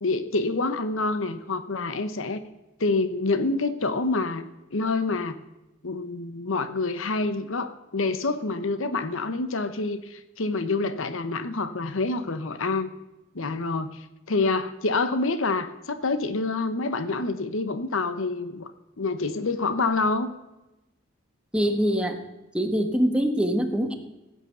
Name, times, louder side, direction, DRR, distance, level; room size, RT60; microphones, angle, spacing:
voice 1, 0.0-2.4 2.8-5.4 5.8-12.9 13.3-18.7 19.0-20.3, left 3 dB, 70° left, 11 dB, 1.0 m, -27 dB
voice 2, 21.5-22.2 22.5-23.9, equal, 5° right, 5 dB, 1.4 m, -23 dB
16.0 x 9.1 x 6.8 m, 1.0 s
head